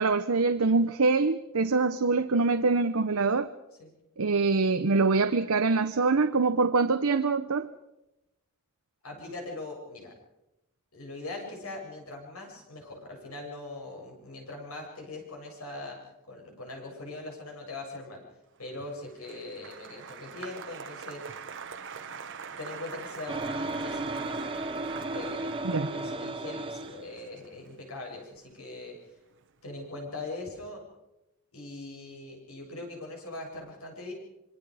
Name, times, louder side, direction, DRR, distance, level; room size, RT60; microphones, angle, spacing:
voice 1, 0.0-3.5 4.2-7.7 25.6-25.9, right 4 dB, 80° right, 0.8 m, -24 dB
voice 2, 9.0-10.1 10.9-18.2 18.6-21.5 22.1-22.2 22.6-24.5 24.9-25.6 25.9-29.0 29.6-30.8 31.5-34.1, left 2 dB, 85° left, 7.7 m, -41 dB
Applause, 18.7-29.0 29.3-29.9, right 6 dB, 60° right, 1.2 m, -44 dB
sound 1, 23.3-27.0, right 2 dB, 25° right, 1.1 m, -34 dB
26.0 x 24.5 x 5.0 m
head